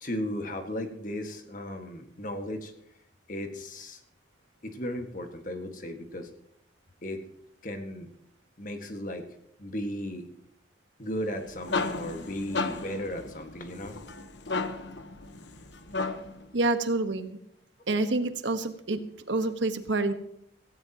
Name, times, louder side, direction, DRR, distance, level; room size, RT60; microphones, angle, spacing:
voice 1, 0.0-2.7 3.3-4.0 4.6-6.3 7.0-7.2 7.6-8.1 8.6-9.3 9.6-10.3 11.0-14.0, left 1 dB, 45° left, 6 dB, 1.8 m, -35 dB
sound 1, 11.2-16.5, left 3 dB, 75° left, 1.2 m, -34 dB
voice 2, 16.5-17.4 17.9-19.0 19.3-20.1, right 2 dB, 80° right, 9 dB, 1.3 m, -27 dB
17.0 x 16.0 x 3.0 m, 0.74 s
head